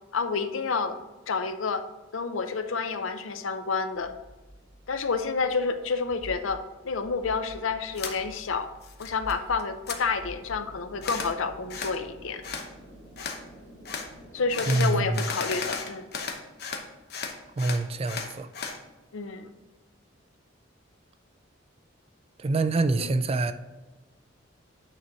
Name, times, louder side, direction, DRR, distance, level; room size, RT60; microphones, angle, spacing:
voice 1, 0.1-1.0 1.3-1.8 2.1-4.1 4.9-8.7 9.0-12.4 14.3-16.1 19.1-19.5 23.0-23.1, left 4 dB, 90° left, 0.6 m, -29 dB
sound 1, 3.9-15.2, equal, 15° left, 2.3 m, -48 dB
sound 2, 8.0-8.2 8.6-9.3 9.6-10.0 11.0-11.3 11.7-12.0 12.4-12.7 13.2-13.4 13.9-14.1 14.5-16.8 17.1-18.8, left 5 dB, 55° left, 0.9 m, -34 dB
voice 2, 14.7-15.3 17.6-18.5 22.4-23.5, right 3 dB, 30° right, 0.3 m, -25 dB
9.1 x 4.1 x 4.5 m
head